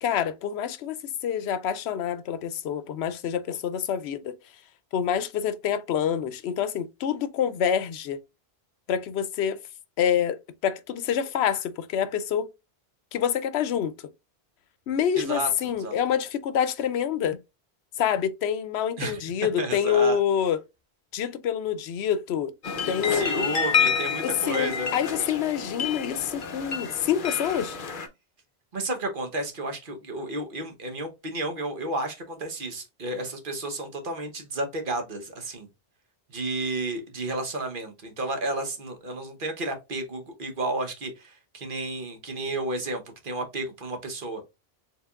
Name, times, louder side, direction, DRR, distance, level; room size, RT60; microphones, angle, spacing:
voice 1, 0.0-4.3 4.9-8.2 8.9-9.6 10.0-12.5 13.1-13.9 14.9-17.4 18.0-20.6 21.1-22.5 22.9-23.5 24.2-27.8, left 8 dB, 80° left, 0.8 m, -27 dB
voice 2, 15.2-16.0 19.0-19.2 19.6-20.2 23.1-25.3 28.7-35.7 36.3-44.4, right 2 dB, 55° right, 1.2 m, -32 dB
sound 1, 22.6-28.1, left 6 dB, 55° left, 0.9 m, -29 dB
4.7 x 3.4 x 2.3 m
omnidirectional pair, 1.1 m